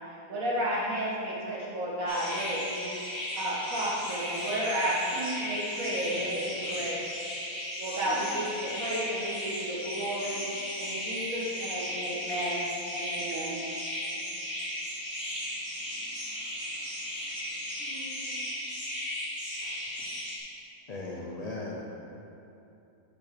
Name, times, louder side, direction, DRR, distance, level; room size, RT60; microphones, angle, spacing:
voice 1, 0.1-2.9 3.4-7.0 7.8-10.4 10.8-13.6, right 1 dB, 65° right, -6 dB, 1.9 m, -32 dB
sound 1, 2.1-20.4, equal, 20° left, 1.5 m, -36 dB
voice 2, 5.8-7.0 7.4-9.0 9.5-9.7 10.3-10.9 11.5-11.9 12.7-12.8 13.3-13.8 14.1-14.5 14.8-18.6 19.6-20.2 21.1-21.2, left 1 dB, 40° left, -8 dB, 2.2 m, -53 dB
voice 3, 20.9-21.8, left 2 dB, 65° left, -3 dB, 0.4 m, -37 dB
6.4 x 6.0 x 5.1 m, 2.8 s
omnidirectional pair, 1.6 m